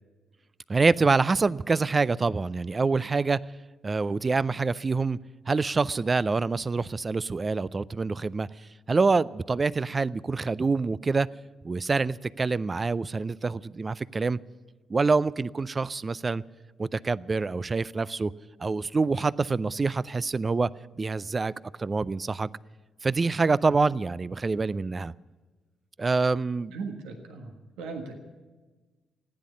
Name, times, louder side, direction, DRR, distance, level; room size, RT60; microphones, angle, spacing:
voice 1, 0.7-3.4 3.8-5.2 5.5-8.5 8.9-11.3 11.6-14.4 14.9-16.4 16.8-18.3 18.6-20.7 21.0-21.5 21.8-22.5 23.0-25.1 26.0-26.7, right 4 dB, 35° right, 0.4 m, -26 dB
voice 2, 26.7-28.2, right 4 dB, 75° right, 1.5 m, -38 dB
15.0 x 10.0 x 9.5 m
hypercardioid pair, 45°, 0 cm